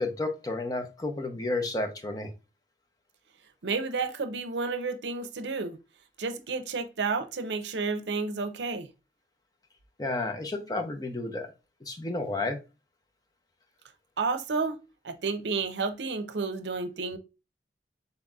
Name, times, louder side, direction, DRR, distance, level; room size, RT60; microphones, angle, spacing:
voice 1, 0.0-2.3 10.0-11.5 11.8-12.6, left 2 dB, 20° left, 0.7 m, -31 dB
voice 2, 3.6-5.8 6.2-8.9 14.2-14.8 15.0-17.2, right 4 dB, 80° right, 0.6 m, -31 dB
4.1 x 4.0 x 2.3 m
head